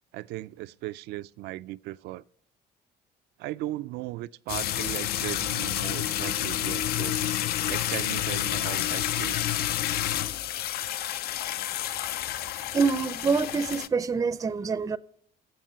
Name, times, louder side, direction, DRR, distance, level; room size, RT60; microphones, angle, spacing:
voice 1, 0.1-2.2 3.4-7.2 7.7-9.5, right 16 dB, 80° right, 0.4 m, -37 dB
sound 1, 4.5-13.9, left 12 dB, 65° left, 0.5 m, -29 dB
voice 2, 12.7-15.0, right 5 dB, 20° right, 0.5 m, -26 dB
17.0 x 7.2 x 5.6 m
cardioid pair, 110°, 17 cm